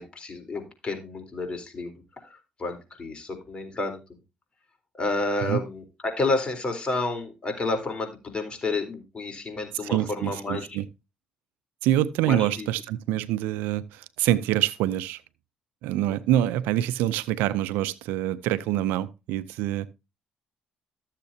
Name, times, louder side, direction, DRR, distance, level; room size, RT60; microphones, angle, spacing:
voice 1, 0.0-1.9 2.2-4.0 5.0-10.7 12.2-12.7, left 2 dB, 35° left, 3.9 m, -30 dB
voice 2, 9.8-10.9 11.8-15.2 15.8-19.9, right 13 dB, 85° right, 0.5 m, -26 dB
13.0 x 7.4 x 2.8 m
supercardioid pair, 65°, 3 cm